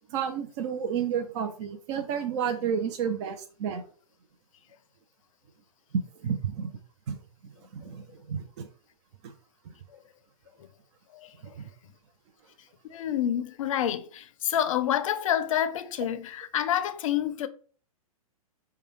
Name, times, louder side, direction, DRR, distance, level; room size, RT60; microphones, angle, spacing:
voice 1, 0.1-3.8 6.2-6.7 7.1-7.2 7.7-8.7 9.2-9.3 11.6-11.7, right 7 dB, 50° right, 0.6 m, -31 dB
voice 2, 12.9-17.5, left 10 dB, 60° left, 0.5 m, -28 dB
4.8 x 2.3 x 3.1 m
hypercardioid pair, 115°, 19 cm